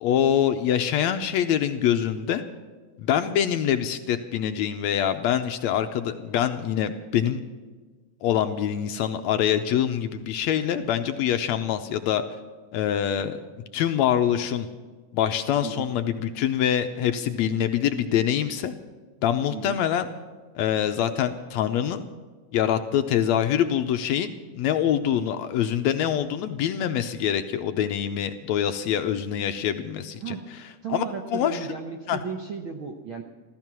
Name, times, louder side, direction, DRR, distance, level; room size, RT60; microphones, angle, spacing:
voice 1, 0.0-2.4 3.0-7.4 8.2-12.2 12.7-13.4 13.7-14.7 15.1-18.7 19.2-20.1 20.6-22.0 22.5-30.4 30.9-31.1 31.3-31.7 32.1-32.2, left 10 dB, 80° left, 8 dB, 1.8 m, -25 dB
voice 2, 30.8-33.2, right 6 dB, 70° right, 2 dB, 1.2 m, -34 dB
14.5 x 14.0 x 6.0 m, 1.4 s
omnidirectional pair, 3.5 m